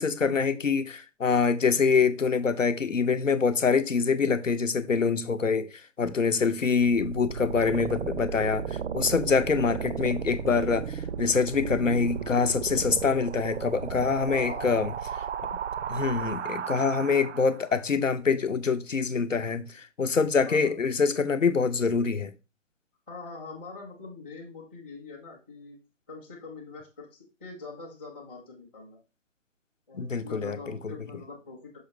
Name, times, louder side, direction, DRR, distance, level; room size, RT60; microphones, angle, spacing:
voice 1, 0.0-5.7 6.0-14.9 15.9-22.3 29.9-30.6 30.8-30.9, left 5 dB, 80° left, 0.8 m, -25 dB
sound 1, 6.8-17.7, right 7 dB, 65° right, 0.5 m, -34 dB
voice 2, 14.3-15.0 20.5-20.7 23.1-25.8 26.1-29.0 29.9-31.8, left 3 dB, 10° left, 0.6 m, -44 dB
6.3 x 5.2 x 3.0 m
figure-of-eight pair, 135°, 38 cm